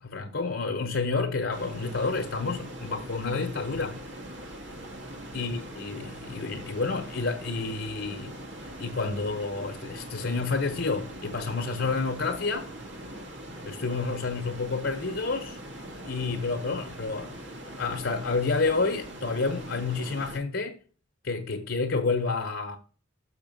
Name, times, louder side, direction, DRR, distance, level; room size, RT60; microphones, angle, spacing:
voice 1, 0.0-4.0 5.3-8.4 8.8-12.7 13.6-15.6 16.0-17.3 17.8-20.8 21.2-22.8, left 4 dB, 60° left, 1.0 m, -29 dB
sound 1, 1.5-20.4, right 1 dB, 60° right, 1.7 m, -42 dB
6.7 x 5.8 x 5.3 m
head